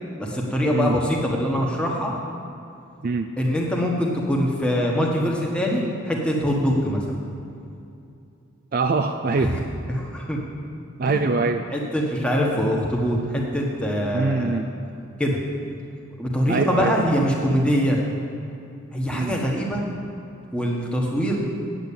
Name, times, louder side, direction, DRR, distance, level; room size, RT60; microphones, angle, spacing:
voice 1, 0.2-2.1 3.4-7.0 9.4-9.6 9.9-10.4 11.0-11.2 11.7-14.6 15.2-15.4 16.2-18.0 18.9-19.8 20.5-21.4, equal, 5° left, -2 dB, 1.4 m, -23 dB
voice 2, 8.7-9.5 11.0-11.6 14.1-14.7 16.5-16.9 19.1-19.3, right 3 dB, 45° right, 6 dB, 0.4 m, -23 dB
9.0 x 8.1 x 8.6 m, 2.7 s
head